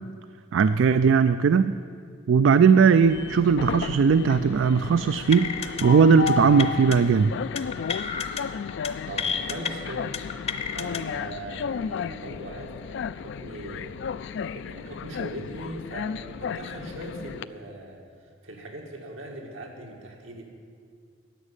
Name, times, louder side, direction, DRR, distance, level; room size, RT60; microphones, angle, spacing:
voice 1, 0.5-1.7 2.3-5.5 5.8-7.4, right 6 dB, 70° right, 12 dB, 0.3 m, -18 dB
Train, 3.0-17.4, left 6 dB, 65° left, 0.3 m, -34 dB
sound 1, 5.3-5.8 6.1-6.3 6.6-7.0 7.6-8.4 8.7-8.9 9.2-9.7 10.1-11.0, left 6 dB, 35° left, 0.7 m, -30 dB
voice 2, 9.1-10.1 10.7-18.0 18.4-20.4, right 1 dB, 85° right, 1 dB, 2.0 m, -40 dB
11.5 x 7.4 x 9.8 m, 2.2 s
head